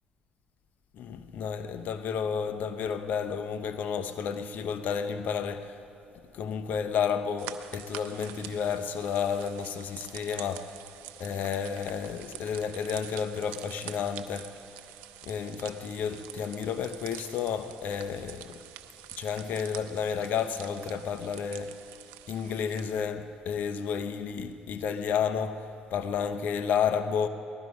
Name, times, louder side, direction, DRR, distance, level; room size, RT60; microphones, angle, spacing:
voice 1, 0.9-5.8 6.3-10.9 11.2-14.6 15.2-18.6 19.2-21.8 22.3-27.3, left 7 dB, 65° left, 0.8 m, -31 dB
sound 1, 7.4-23.0, right 13 dB, 85° right, 0.6 m, -46 dB
18.5 x 12.5 x 5.2 m
supercardioid pair, 75°, 3 cm